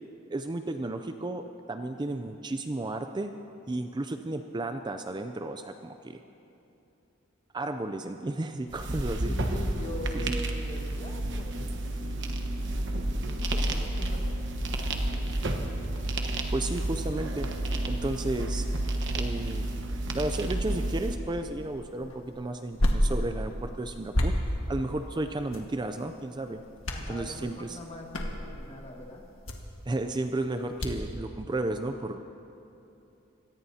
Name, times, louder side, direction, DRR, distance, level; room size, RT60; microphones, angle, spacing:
voice 1, 0.3-3.3 3.7-6.2 7.5-9.3 10.1-10.4 16.5-17.5 17.9-18.6 19.1-19.8 20.1-24.3 24.7-26.6 27.1-27.8 29.9-32.2, right 2 dB, 20° right, 7 dB, 0.4 m, -33 dB
sound 1, 8.7-21.2, right 1 dB, 60° right, 1.2 m, -31 dB
voice 2, 9.2-12.9 13.2-14.4 14.9-15.8 26.9-29.2, left 1 dB, 30° left, 1 dB, 1.6 m, -43 dB
sound 2, 21.0-31.2, equal, 70° left, 1.6 m, -33 dB
25.0 x 18.0 x 2.8 m, 2.9 s
head